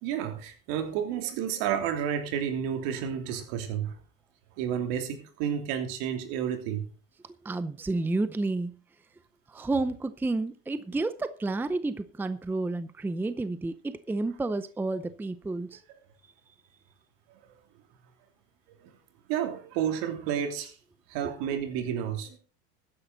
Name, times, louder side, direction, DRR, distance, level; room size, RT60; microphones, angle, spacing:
voice 1, 0.0-3.9 4.6-6.8 19.3-20.7 21.1-22.4, right 9 dB, 70° right, 3.0 m, -31 dB
voice 2, 7.4-8.8 9.5-15.8, right 2 dB, 5° right, 0.6 m, -30 dB
14.0 x 10.0 x 4.0 m
supercardioid pair, 120°, 32 cm